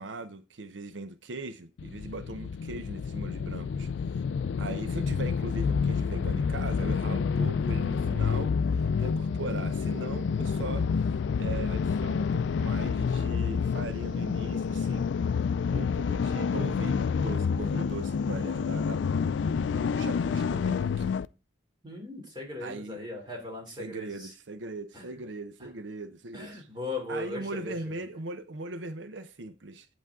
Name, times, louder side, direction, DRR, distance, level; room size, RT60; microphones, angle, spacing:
voice 1, 0.0-4.2 4.6-15.1 15.7-19.1 19.7-21.2 22.6-23.0 23.8-26.7 27.1-29.9, right 3 dB, 85° right, 0.7 m, -40 dB
sound 1, 1.8-21.3, left 6 dB, 75° left, 0.3 m, -28 dB
voice 2, 21.8-24.3 24.9-25.2 25.6-25.7 26.3-28.0, left 2 dB, 25° right, 3.0 m, -38 dB
8.2 x 7.9 x 3.6 m
head